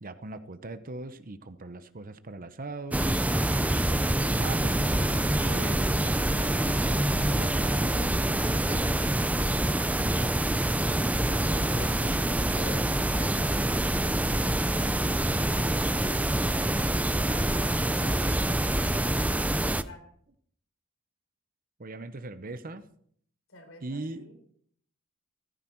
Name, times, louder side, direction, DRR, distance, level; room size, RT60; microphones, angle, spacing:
voice 1, 0.0-3.0 4.2-9.0 21.8-22.8 23.8-24.2, right 2 dB, 45° right, 11 dB, 0.9 m, -40 dB
sound 1, 2.9-19.8, right 1 dB, 5° right, 0.5 m, -26 dB
voice 2, 10.6-13.8 14.3-16.8 17.3-18.4 18.9-20.1 23.5-24.4, left 3 dB, 70° left, 4 dB, 4.1 m, -48 dB
14.5 x 14.0 x 4.6 m, 0.63 s
head